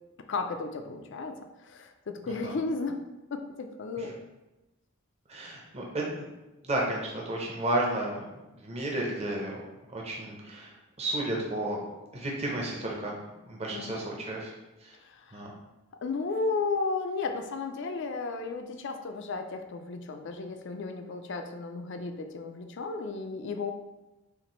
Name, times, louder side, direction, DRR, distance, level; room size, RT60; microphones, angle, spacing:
voice 1, 0.3-3.0 3.3-4.2 13.7-14.0 15.1-15.5 16.0-23.7, left 4 dB, 55° left, 6 dB, 0.4 m, -34 dB
voice 2, 5.3-6.1 6.6-8.2 8.6-9.6 9.9-11.8 12.1-13.1 13.5-14.5 14.8-14.9 15.3-15.5, right 1 dB, 30° right, -2 dB, 0.6 m, -32 dB
5.8 x 2.5 x 3.0 m, 1.0 s
head